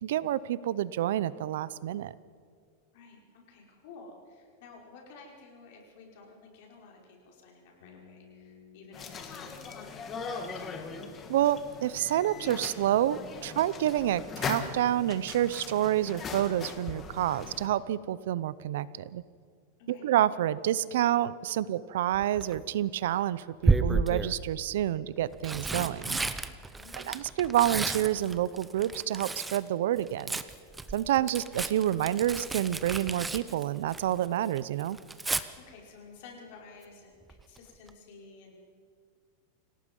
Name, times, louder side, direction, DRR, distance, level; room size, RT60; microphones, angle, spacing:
voice 1, 0.0-2.1 11.3-19.2 19.9-26.2 27.0-30.4 30.9-35.0, right 12 dB, 70° right, 18 dB, 0.7 m, -28 dB
voice 2, 2.9-10.9 13.4-13.5 19.9-20.1 21.5-21.7 26.8-27.3 35.6-38.5, left 4 dB, 55° left, 0 dB, 5.3 m, -52 dB
Bass guitar, 7.8-11.8, left 6 dB, 85° left, 5.8 m, -58 dB
sound 1, 8.9-17.7, left 5 dB, 20° left, 1.7 m, -40 dB
Tearing, 22.1-22.6 23.6-24.4 25.2-29.7 30.0-34.3 34.6-35.4 37.3-37.6 37.9-38.0, right 3 dB, 10° right, 0.7 m, -32 dB
27.5 x 17.5 x 5.5 m, 2.1 s
supercardioid pair, 160°, 0 cm